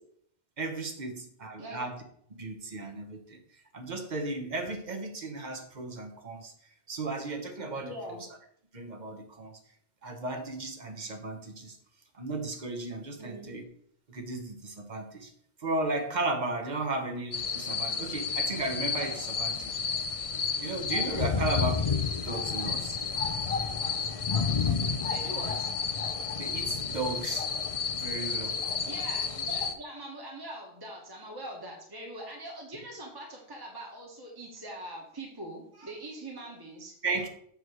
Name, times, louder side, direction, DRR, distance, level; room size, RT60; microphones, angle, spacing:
voice 1, 0.6-2.0 2.3-3.4 3.7-6.5 6.9-8.2 8.7-9.6 10.0-11.8 12.1-13.6 14.1-15.3 15.6-20.0 20.6-21.8 22.2-23.0 26.4-27.5 27.9-28.6 37.0-37.3, right 2 dB, 45° right, 4 dB, 1.1 m, -35 dB
voice 2, 7.8-8.2 13.2-13.5 21.2-21.6 25.1-25.7 28.8-36.9, right 1 dB, 20° right, -1 dB, 1.4 m, -42 dB
sound 1, 17.3-29.7, left 6 dB, 45° left, 0.5 m, -31 dB
7.9 x 3.1 x 6.2 m, 0.65 s
omnidirectional pair, 1.1 m